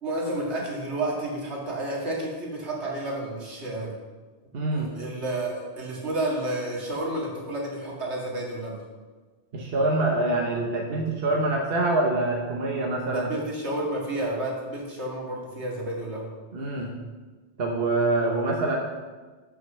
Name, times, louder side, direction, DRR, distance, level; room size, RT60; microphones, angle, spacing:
voice 1, 0.0-3.9 4.7-8.8 13.1-16.3, right 1 dB, 85° right, -3 dB, 2.3 m, -31 dB
voice 2, 4.5-4.9 9.5-13.3 16.5-16.9 17.6-18.8, right 2 dB, 60° right, 0 dB, 1.2 m, -25 dB
7.6 x 6.6 x 6.4 m, 1.4 s
omnidirectional pair, 1.1 m